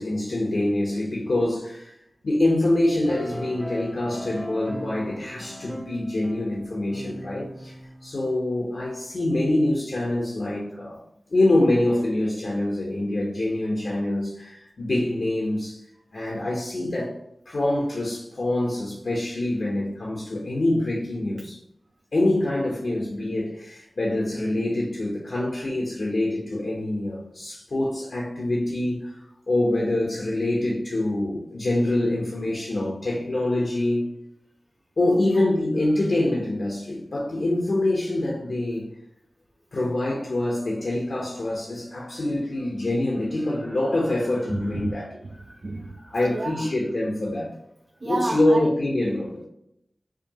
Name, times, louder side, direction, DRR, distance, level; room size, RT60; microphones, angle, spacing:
voice 1, 0.0-1.9 2.2-7.8 8.0-11.0 11.3-15.8 16.1-17.1 17.5-21.6 22.1-29.2 29.5-34.1 35.0-38.9 39.7-45.1 45.5-45.6 46.1-47.5 48.0-49.4, left 1 dB, 70° left, 0.9 m, -25 dB
sound 1, 3.0-8.4, equal, 5° left, 0.6 m, -39 dB
voice 2, 35.1-35.4 44.5-46.7 48.0-48.7, right 2 dB, 55° right, 0.4 m, -32 dB
4.9 x 2.3 x 2.8 m
wide cardioid pair, 70°, 0 cm